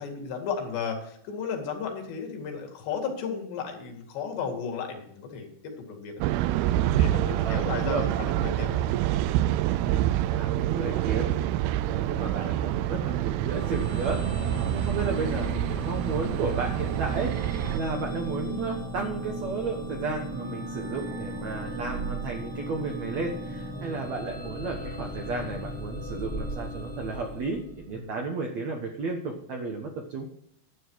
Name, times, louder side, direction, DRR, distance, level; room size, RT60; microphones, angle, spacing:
voice 1, 0.0-6.2 6.9-8.9 23.9-24.1 27.9-28.1, left 6 dB, 75° left, 3 dB, 4.2 m, -34 dB
sound 1, 6.2-17.8, right 13 dB, 85° right, 2.2 m, -27 dB
voice 2, 7.3-8.1 9.8-11.4 11.9-14.2 14.7-30.3, right 4 dB, 70° right, 2 dB, 1.6 m, -33 dB
sound 2, 13.4-28.1, right 1 dB, 15° right, 1.1 m, -36 dB
11.5 x 9.2 x 4.7 m, 0.72 s
omnidirectional pair, 5.1 m